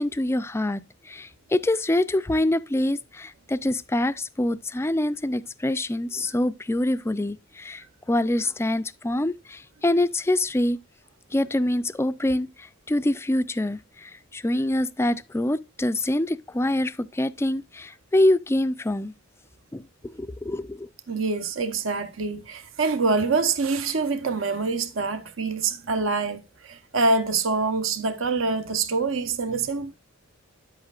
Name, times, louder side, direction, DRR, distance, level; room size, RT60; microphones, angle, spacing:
voice 1, 0.0-10.8 11.3-19.1 19.7-19.9 20.1-20.9, left 1 dB, 10° left, 0.4 m, -25 dB
voice 2, 21.1-30.0, right 3 dB, 70° right, 1.0 m, -25 dB
10.5 x 8.0 x 2.4 m
head